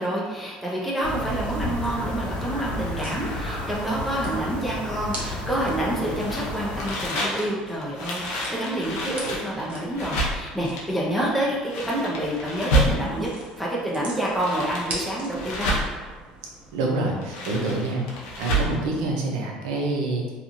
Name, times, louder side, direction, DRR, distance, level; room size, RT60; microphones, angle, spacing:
voice 1, 0.0-13.3 13.6-15.8, right 1 dB, ahead, -6 dB, 0.6 m, -28 dB
sound 1, 1.0-6.9, left 1 dB, 40° left, 0.9 m, -32 dB
sound 2, 1.2-17.4, right 2 dB, 50° right, 0.7 m, -43 dB
sound 3, 6.2-13.4 14.1-16.1 17.1-18.8, right 1 dB, 90° left, 0.6 m, -28 dB
voice 2, 16.7-18.0 18.4-20.3, right 2 dB, 90° right, -1 dB, 0.5 m, -26 dB
2.8 x 2.4 x 2.6 m, 1.4 s
supercardioid pair, 90°, 3 cm